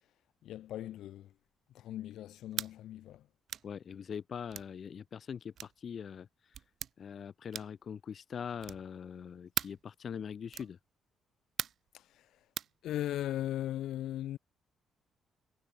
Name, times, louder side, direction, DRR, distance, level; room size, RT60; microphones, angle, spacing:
voice 1, 0.4-1.3 1.7-3.3 11.9-12.3 12.8-14.4, left 13 dB, 80° left, 3.4 m, -38 dB
sound 1, 2.5-2.7 3.5-3.7 4.5-4.7 5.6-5.8 6.5-6.9 7.5-7.8 8.6-8.9 9.5-9.8 10.5-10.7 11.6-11.9 12.6-12.7, right 9 dB, 60° right, 0.8 m, -38 dB
voice 2, 3.6-6.5 7.0-10.8, left 7 dB, 50° left, 0.9 m, -42 dB
cardioid pair, 90°, 0 cm